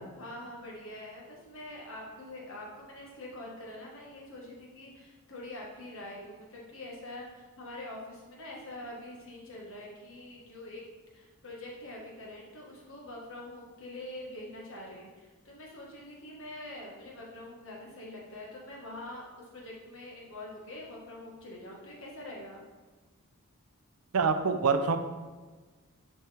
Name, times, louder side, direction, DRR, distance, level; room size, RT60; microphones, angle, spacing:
voice 1, 0.1-10.8 11.1-22.6, left 1 dB, 60° left, -3 dB, 1.7 m, -45 dB
voice 2, 24.1-25.0, right 5 dB, 80° right, 8 dB, 0.6 m, -25 dB
10.5 x 4.3 x 3.5 m, 1.3 s
head